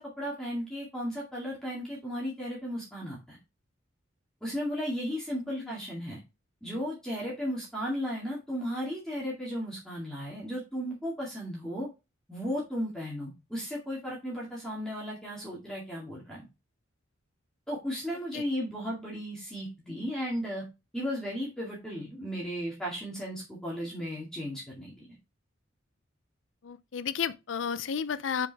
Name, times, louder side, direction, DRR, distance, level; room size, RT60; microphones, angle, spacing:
voice 1, 0.0-3.4 4.4-6.2 6.6-11.9 12.3-16.4 17.7-20.6 20.9-25.2, equal, 5° left, 2.1 m, -35 dB
voice 2, 5.5-5.8 18.3-18.4 26.6-28.5, left 7 dB, 70° left, 0.5 m, -32 dB
7.0 x 4.9 x 3.4 m
head